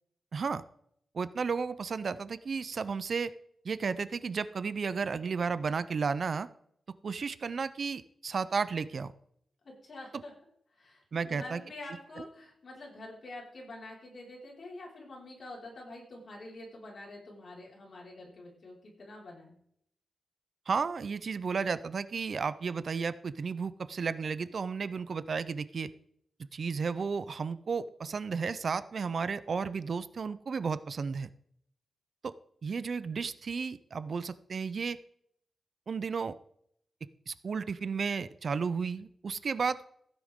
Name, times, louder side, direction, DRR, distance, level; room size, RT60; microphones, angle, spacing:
voice 1, 0.3-0.6 1.1-3.3 3.6-6.5 7.0-9.1 11.1-11.6 12.2-12.3 20.7-25.9 26.5-31.3 32.2-32.3 32.6-35.0 35.9-36.4 37.3-39.9, right 5 dB, 50° right, 15 dB, 0.4 m, -33 dB
voice 2, 9.6-10.3 10.7-19.6, left 2 dB, 45° left, -3 dB, 4.8 m, -47 dB
15.5 x 10.0 x 3.6 m, 0.70 s
wide cardioid pair, 150°, 0 cm